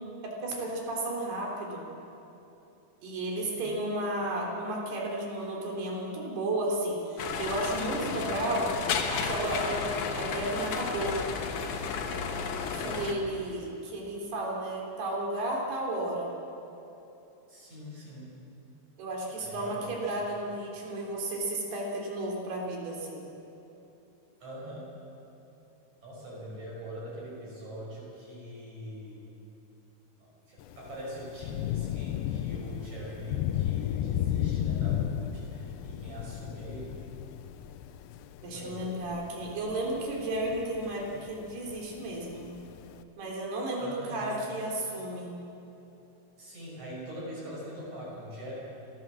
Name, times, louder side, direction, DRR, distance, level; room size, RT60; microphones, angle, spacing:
voice 1, 0.2-1.8 3.0-8.7 9.1-11.2 12.7-16.3 19.0-23.2 38.4-42.5 43.2-45.4, right 1 dB, 85° right, -1 dB, 5.3 m, -33 dB
voice 2, 3.4-3.7 12.7-13.2 17.5-18.3 19.4-20.2 24.4-24.9 26.0-29.2 30.2-37.0 38.4-38.9 43.8-44.4 46.4-48.5, equal, 45° right, -5 dB, 7.0 m, -43 dB
sound 1, 7.2-13.1, left 5 dB, 60° left, 2.4 m, -33 dB
Thunder / Rain, 30.6-43.0, left 11 dB, 85° left, 2.6 m, -34 dB
29.5 x 13.5 x 7.6 m, 3.0 s
omnidirectional pair, 4.5 m